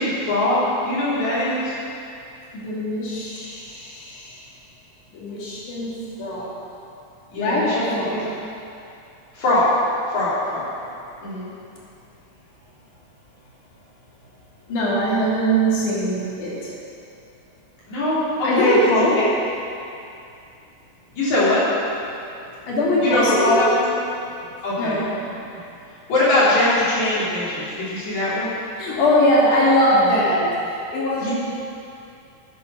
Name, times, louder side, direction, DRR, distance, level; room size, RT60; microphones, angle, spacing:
voice 1, 0.0-1.8 7.3-8.2 9.3-9.7 10.1-10.9 11.2-11.5 17.9-19.1 21.2-21.6 23.0-23.8 24.6-25.3 26.1-28.5 31.2-31.3, left 1 dB, 70° left, -9 dB, 4.8 m, -21 dB
voice 2, 2.5-4.4 5.1-5.9 6.2-6.5 7.4-8.2 14.7-16.7 18.4-19.3 22.7-23.7 24.4-24.5 24.8-25.1 28.8-30.5 30.9-31.3, equal, 85° left, -6 dB, 3.6 m, -21 dB
10.5 x 9.3 x 6.3 m, 2.6 s
omnidirectional pair, 3.4 m